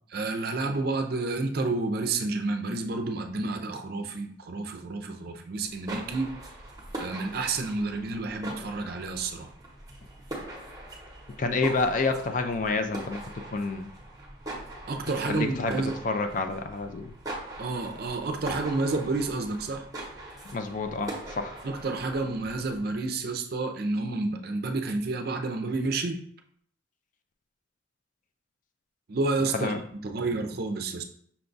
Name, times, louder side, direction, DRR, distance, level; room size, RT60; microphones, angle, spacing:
voice 1, 0.1-6.3 7.0-9.5 14.9-16.0 17.6-19.9 21.6-26.2 29.1-29.7 30.0-31.0, right 3 dB, 50° right, 4 dB, 0.5 m, -30 dB
sound 1, 5.6-23.0, right 1 dB, 20° right, 0.8 m, -42 dB
voice 2, 11.4-13.2 13.5-13.9 15.3-17.1 20.5-21.5 29.5-29.8, left 3 dB, 40° left, 7 dB, 0.4 m, -28 dB
5.8 x 2.3 x 3.9 m, 0.63 s
head